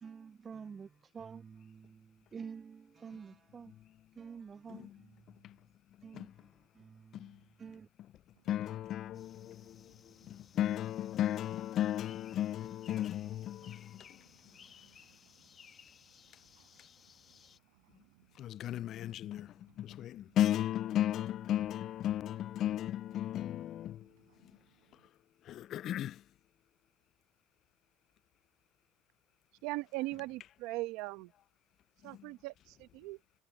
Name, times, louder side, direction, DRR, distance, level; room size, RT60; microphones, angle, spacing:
voice 1, 0.0-3.7 4.2-5.2 6.0-6.5 6.8-7.3 7.6-7.9, right 6 dB, 25° right, 0.4 m, -49 dB
sound 1, 8.3-25.1, right 25 dB, 90° right, 6.7 m, -70 dB
voice 2, 8.5-9.9 10.3-14.0 18.4-24.1 25.5-26.2 32.2-32.3, left 12 dB, 50° left, 0.3 m, -35 dB
sound 2, 9.1-17.6, left 7 dB, 35° left, 1.4 m, -60 dB
voice 3, 29.6-31.3 32.0-33.2, right 20 dB, 75° right, 1.1 m, -39 dB
supercardioid pair, 120°, 0 cm